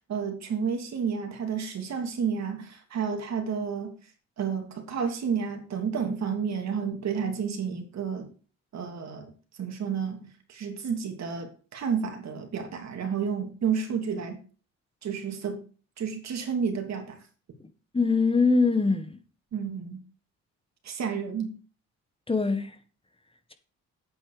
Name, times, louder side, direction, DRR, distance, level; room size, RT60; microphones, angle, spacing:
voice 1, 0.1-3.9 4.4-8.3 8.7-9.3 9.6-14.4 15.0-15.6 16.0-17.2 19.5-20.0 20.8-21.5, right 6 dB, 60° right, 2.9 m, -31 dB
voice 2, 17.9-19.1 22.3-22.7, left 4 dB, 20° left, 1.5 m, -22 dB
8.8 x 8.2 x 5.0 m
cardioid pair, 90°, 30 cm